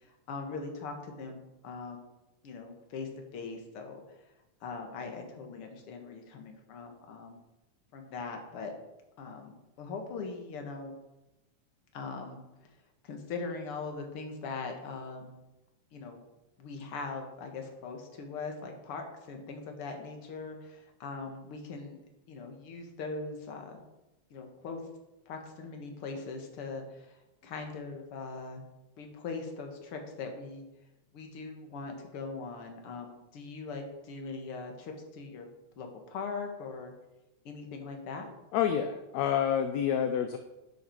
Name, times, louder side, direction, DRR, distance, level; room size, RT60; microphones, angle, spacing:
voice 1, 0.3-2.1 2.4-4.0 4.6-7.4 7.9-8.7 9.2-10.9 11.9-12.4 13.0-15.4 15.9-16.2 16.6-22.0 22.3-23.7 24.3-24.8 25.3-27.2 27.4-28.6 29.0-30.6 31.1-35.5 35.8-36.9 37.5-38.3, left 4 dB, 50° left, 3 dB, 2.3 m, -41 dB
voice 2, 38.5-40.4, left 9 dB, 75° left, 8 dB, 1.8 m, -28 dB
11.0 x 8.1 x 4.6 m, 0.98 s
omnidirectional pair, 3.4 m